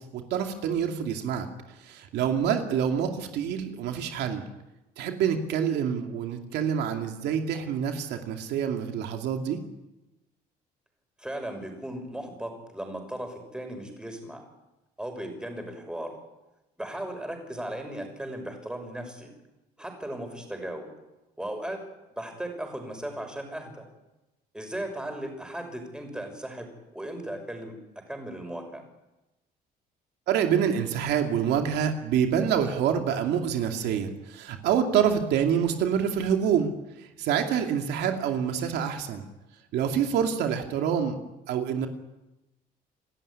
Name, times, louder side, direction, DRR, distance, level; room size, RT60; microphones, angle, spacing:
voice 1, 0.0-1.5 1.8-4.4 5.0-9.6 30.3-36.7 37.0-39.3 39.7-41.2 41.5-41.9, right 8 dB, 80° right, 4 dB, 2.5 m, -26 dB
voice 2, 11.2-14.4 15.0-16.1 16.8-19.3 19.8-20.9 21.4-21.8 22.2-23.8 24.5-27.8 28.1-28.8, right 1 dB, 5° right, 4 dB, 6.2 m, -36 dB
28.0 x 13.5 x 9.9 m, 1.0 s
cardioid pair, 110°, 17 cm